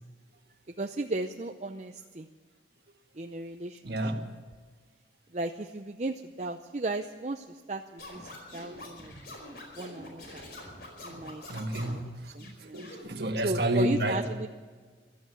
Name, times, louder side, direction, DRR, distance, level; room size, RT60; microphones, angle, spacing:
voice 1, 0.8-2.3 3.2-4.0 5.3-9.1 9.8-10.4 11.0-11.4 11.7-12.0 12.3-12.8 13.4-14.5, right 2 dB, 40° right, 5 dB, 0.6 m, -35 dB
voice 2, 3.8-4.3 11.5-12.3 12.6-14.2, right 1 dB, 60° right, 5 dB, 1.7 m, -30 dB
Scratching (performance technique), 8.0-12.0 12.4-13.0, left 1 dB, 55° left, 4.8 m, -45 dB
15.5 x 12.5 x 7.1 m, 1.5 s
head